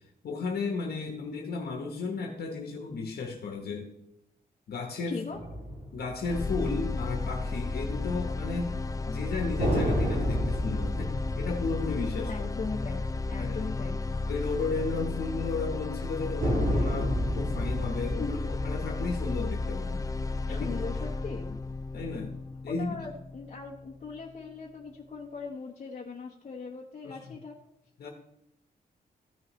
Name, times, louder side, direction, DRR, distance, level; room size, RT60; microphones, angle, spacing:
voice 1, 0.2-3.9 4.7-5.2 5.9-8.7 9.1-12.3 13.4-13.6 14.3-20.1 20.5-20.8 21.9-22.4 22.6-23.0 27.0-27.4 28.0-28.1, left 4 dB, 80° left, 2 dB, 1.1 m, -34 dB
voice 2, 5.0-5.4 12.3-14.0 18.2-18.3 20.5-21.6 22.7-27.5, left 4 dB, 45° left, -1 dB, 1.1 m, -39 dB
sound 1, 5.3-7.2 9.6-13.3 13.7-13.8 16.4-20.1, equal, 55° right, 2.8 m, -32 dB
sound 2, 6.2-24.3, left 3 dB, 20° left, 0.4 m, -33 dB
14.0 x 6.3 x 3.1 m, 0.83 s
wide cardioid pair, 125°, 16 cm